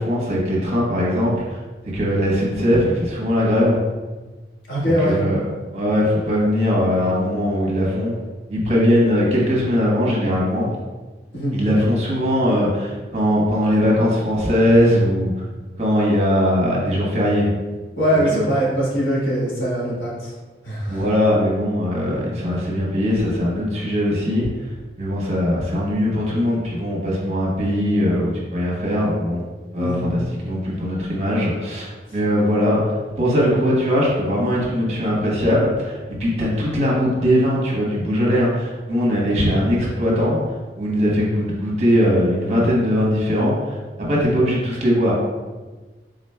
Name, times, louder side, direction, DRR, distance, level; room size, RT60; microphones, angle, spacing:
voice 1, 0.0-1.6 1.9-3.8 4.8-5.4 5.7-8.2 8.5-10.7 11.5-15.3 15.8-17.5 18.3-18.4 20.9-24.7 25.0-29.4 29.7-43.8 44.1-45.1, equal, 40° right, -5 dB, 1.1 m, -20 dB
voice 2, 4.7-5.2 11.3-11.6 18.0-20.3 20.6-21.0 29.7-30.1, equal, 80° left, -6 dB, 1.5 m, -21 dB
4.9 x 3.9 x 2.2 m, 1.3 s
head